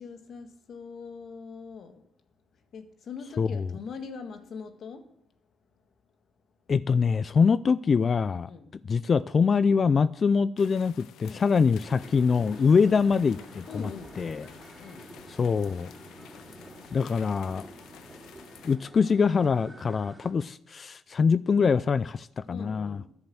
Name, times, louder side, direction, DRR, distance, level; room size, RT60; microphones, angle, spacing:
voice 1, 0.0-2.0 2.7-5.1 7.4-7.6 8.5-8.8 11.2-11.4 12.6-12.8 13.7-15.1 22.5-23.2, left 5 dB, 60° left, 1.7 m, -42 dB
voice 2, 6.7-8.5 8.8-13.9 14.2-14.5 15.3-15.9 16.9-17.6 18.6-23.0, left 5 dB, 45° left, 0.4 m, -24 dB
sound 1, 10.6-18.8, left 10 dB, 85° left, 0.8 m, -51 dB
sound 2, 11.8-20.3, right 1 dB, 15° right, 4.4 m, -48 dB
10.5 x 8.8 x 7.8 m
cardioid pair, 90°, 0 cm